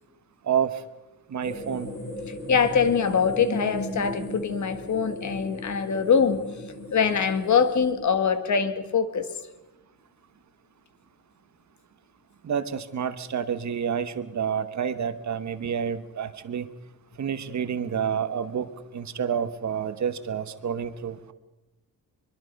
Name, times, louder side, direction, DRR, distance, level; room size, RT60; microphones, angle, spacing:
voice 1, 1.3-1.9 12.4-16.7 17.2-18.7 18.9-21.3, right 7 dB, 50° right, 12 dB, 1.1 m, -29 dB
sound 1, 1.4-7.9, left 1 dB, 35° left, 7.2 m, -37 dB
voice 2, 2.5-6.4 6.9-9.3, left 6 dB, 50° left, 9 dB, 1.8 m, -23 dB
24.0 x 23.0 x 5.3 m, 1.0 s
wide cardioid pair, 175°, 36 cm